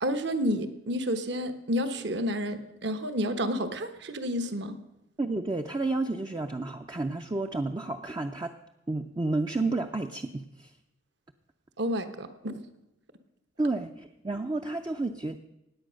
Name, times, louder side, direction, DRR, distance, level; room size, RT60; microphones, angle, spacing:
voice 1, 0.0-4.8 11.8-12.6, equal, 60° right, 10 dB, 1.1 m, -30 dB
voice 2, 5.2-8.5 8.9-10.7 13.6-15.4, right 2 dB, 20° right, 5 dB, 0.5 m, -31 dB
17.0 x 9.5 x 6.3 m, 0.93 s
head